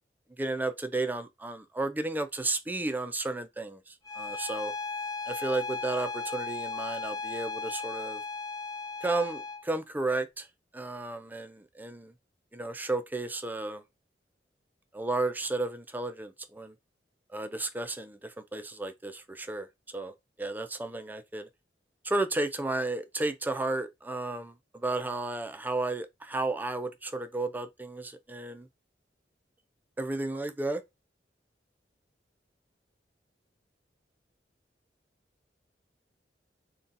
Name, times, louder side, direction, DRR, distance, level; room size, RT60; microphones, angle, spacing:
voice 1, 0.4-4.7 5.3-8.2 9.0-10.5 10.7-12.1 12.5-13.8 14.9-16.8 17.3-21.5 22.0-28.7 30.0-30.8, right 2 dB, 10° right, 0.3 m, -33 dB
Bowed string instrument, 4.0-9.7, left 4 dB, 20° left, 0.7 m, -36 dB
2.6 x 2.2 x 3.8 m
head